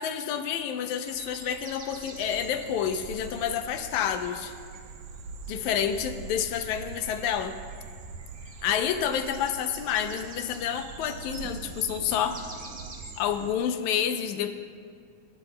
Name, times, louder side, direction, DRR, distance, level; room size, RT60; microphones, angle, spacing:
voice 1, 0.0-4.5 5.5-7.5 8.6-12.4 13.2-14.6, left 8 dB, 75° left, 8 dB, 1.8 m, -29 dB
sound 1, 1.0-13.5, right 3 dB, 35° right, 1.7 m, -49 dB
sound 2, 1.9-13.5, right 4 dB, 75° right, 2.4 m, -43 dB
18.5 x 17.5 x 2.2 m, 2.2 s
omnidirectional pair, 3.8 m